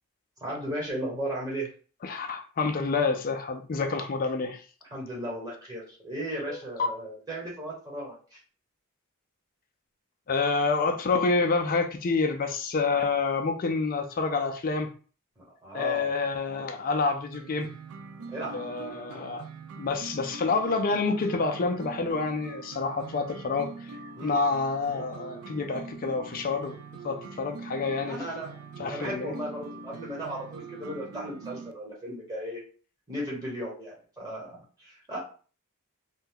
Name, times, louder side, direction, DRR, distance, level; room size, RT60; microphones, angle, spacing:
voice 1, 0.4-1.7 4.9-8.4 15.4-16.1 18.3-18.6 24.2-24.4 28.0-28.5 28.9-32.6 33.1-35.2, right 1 dB, 15° right, -5 dB, 1.1 m, -36 dB
voice 2, 2.0-4.6 6.5-6.6 10.3-14.9 15.7-17.7 18.5-19.4 19.8-23.7 24.2-26.8 27.0-28.2 28.8-29.3, left 4 dB, 40° left, 5 dB, 0.4 m, -28 dB
sound 1, 17.3-31.7, right 4 dB, 70° right, 0.4 m, -43 dB
2.6 x 2.2 x 3.5 m, 0.40 s
head